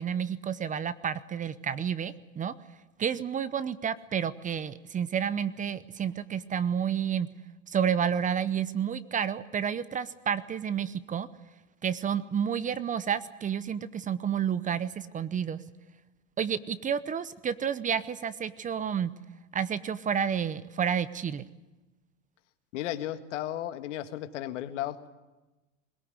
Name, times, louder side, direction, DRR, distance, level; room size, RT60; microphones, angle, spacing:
voice 1, 0.0-2.5 3.0-7.3 7.7-11.3 11.8-15.6 16.4-19.1 19.5-21.5, right 8 dB, 20° right, 16 dB, 0.7 m, -30 dB
voice 2, 22.7-25.1, left 12 dB, 70° left, 10 dB, 1.7 m, -34 dB
21.5 x 18.0 x 9.6 m, 1.1 s
hypercardioid pair, 110°, 37 cm